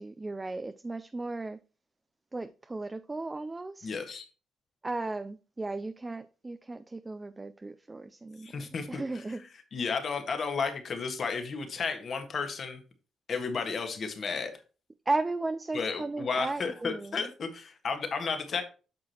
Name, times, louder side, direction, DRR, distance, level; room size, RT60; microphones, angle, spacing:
voice 1, 0.0-1.6 2.3-4.0 4.8-8.5 8.9-9.4 15.1-17.3, right 2 dB, 20° right, 0.5 m, -35 dB
voice 2, 3.8-4.3 8.4-9.2 9.7-12.8 13.3-14.5 15.7-18.6, left 5 dB, 50° left, 1.6 m, -33 dB
8.5 x 6.1 x 3.0 m
cardioid pair, 90°, 0 cm